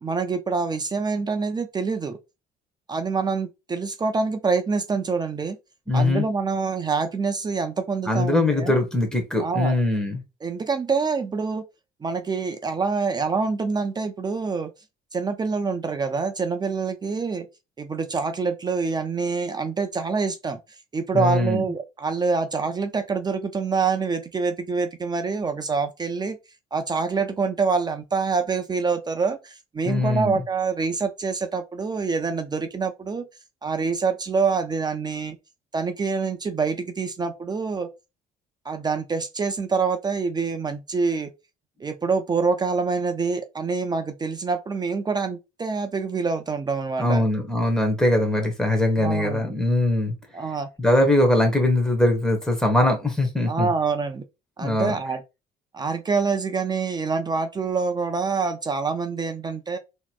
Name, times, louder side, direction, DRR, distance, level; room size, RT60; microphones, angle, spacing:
voice 1, 0.0-2.2 2.9-5.6 5.9-8.8 9.4-9.8 10.4-11.6 12.0-14.7 15.1-17.5 17.8-26.4 26.7-33.3 33.6-35.4 35.7-37.9 38.6-41.3 41.8-47.2 49.0-49.5 50.3-50.7 53.5-54.2 54.6-55.2 55.7-59.8, right 4 dB, 25° right, 0.5 m, -26 dB
voice 2, 5.9-6.2 8.1-10.2 21.1-21.6 29.9-30.4 47.0-50.1 50.8-53.7 54.6-54.9, left 1 dB, 5° left, 1.3 m, -21 dB
3.9 x 3.0 x 2.4 m
cardioid pair, 110°, 17 cm